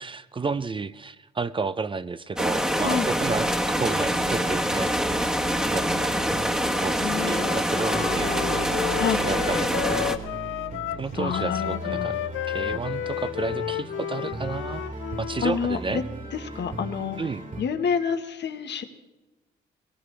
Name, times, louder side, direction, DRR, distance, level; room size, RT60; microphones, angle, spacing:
voice 1, 0.0-5.3 5.6-6.1 6.8-8.3 9.2-10.2 11.0-12.2 12.5-14.8 15.2-16.0 17.2-17.4, right 4 dB, 25° right, 14 dB, 0.5 m, -31 dB
sound 1, 2.4-10.2, equal, 5° right, 1.4 m, -25 dB
sound 2, 3.7-17.6, right 3 dB, 40° right, 2.3 m, -38 dB
voice 2, 7.0-7.5 9.0-9.2 11.2-12.1 15.4-16.0 16.3-17.2 17.6-18.8, left 7 dB, 60° left, 7 dB, 1.5 m, -28 dB
Wind instrument woodwind instrument, 7.1-15.6, left 13 dB, 85° left, 0.5 m, -32 dB
21.5 x 19.0 x 3.4 m, 1.1 s
cardioid pair, 90°, 20 cm